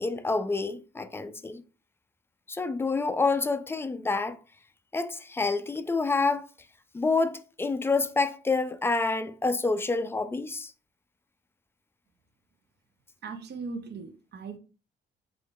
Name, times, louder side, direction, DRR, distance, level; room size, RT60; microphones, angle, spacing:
voice 1, 0.0-1.6 2.5-4.4 4.9-6.5 6.9-10.7, left 3 dB, 10° left, 0.3 m, -28 dB
voice 2, 13.2-14.6, right 4 dB, 60° right, 0.7 m, -38 dB
3.8 x 3.5 x 2.3 m
cardioid pair, 90°, 20 cm